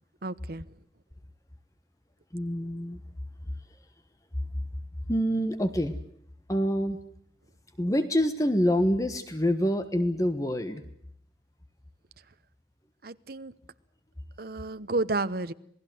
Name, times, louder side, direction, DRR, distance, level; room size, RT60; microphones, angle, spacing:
voice 1, 0.2-0.6 13.0-13.5 14.4-15.5, right 2 dB, 55° right, 13 dB, 1.0 m, -31 dB
voice 2, 2.3-3.0 5.1-6.0 6.5-7.0 7.8-10.8, equal, 20° left, 9 dB, 1.3 m, -26 dB
28.0 x 19.5 x 7.9 m, 0.67 s
head